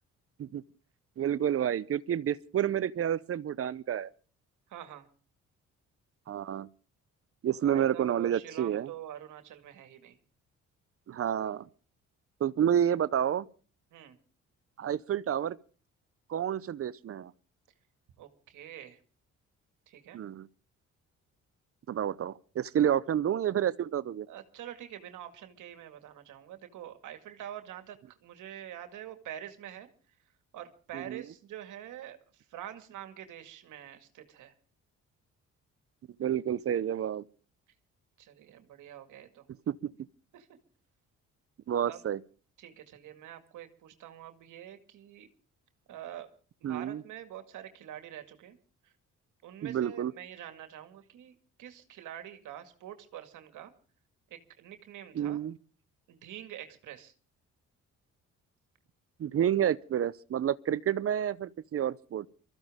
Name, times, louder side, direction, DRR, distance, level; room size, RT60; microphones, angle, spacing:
voice 1, 1.2-4.1 6.3-6.7 7.4-8.9 11.1-11.7 12.4-13.5 14.8-15.6 16.3-17.3 20.1-20.5 21.9-24.3 30.9-31.2 36.2-37.2 39.7-39.9 41.7-42.2 46.6-47.0 49.6-50.1 55.1-55.5 59.2-62.3, right 10 dB, 50° right, 0.7 m, -29 dB
voice 2, 4.7-5.1 7.6-10.2 13.9-14.2 18.2-19.0 19.9-20.2 24.3-29.9 30.5-34.5 38.2-39.5 40.3-40.6 41.9-42.0 42.6-45.3 45.9-46.3 46.6-48.6 48.8-48.9 49.4-53.7 54.3-55.4 56.1-57.1, right 11 dB, 85° right, 2.1 m, -46 dB
23.5 x 14.5 x 3.6 m
cardioid pair, 90°, 30 cm